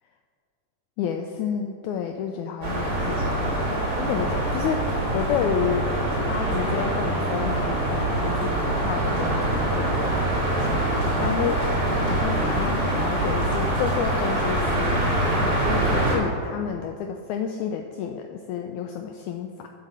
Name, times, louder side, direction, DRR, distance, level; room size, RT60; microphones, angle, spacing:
voice 1, 1.0-4.8 5.1-5.9 6.2-11.6 12.1-15.0 15.4-19.7, left 8 dB, 85° left, 5 dB, 1.7 m, -30 dB
sound 1, 2.6-16.2, right 1 dB, 25° right, 3.2 m, -24 dB
9.9 x 5.9 x 7.4 m, 2.5 s
omnidirectional pair, 3.9 m